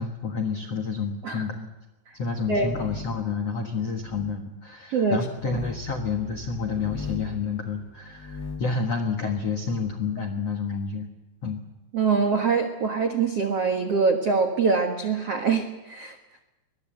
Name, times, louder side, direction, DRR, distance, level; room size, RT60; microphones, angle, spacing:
voice 1, 0.0-1.7 2.1-11.1 11.4-11.6, left 5 dB, 70° left, 3 dB, 1.5 m, -29 dB
sound 1, 2.3-3.3 4.0-4.4 5.4-5.8 6.7-7.4 8.0-8.8, left 5 dB, 50° left, 1.1 m, -39 dB
voice 2, 4.9-5.2 11.9-16.2, right 5 dB, 75° right, 4 dB, 1.4 m, -24 dB
sound 2, 5.4-8.4, left 2 dB, 45° right, 8.0 m, -45 dB
23.0 x 22.0 x 7.7 m, 1.0 s
omnidirectional pair, 5.3 m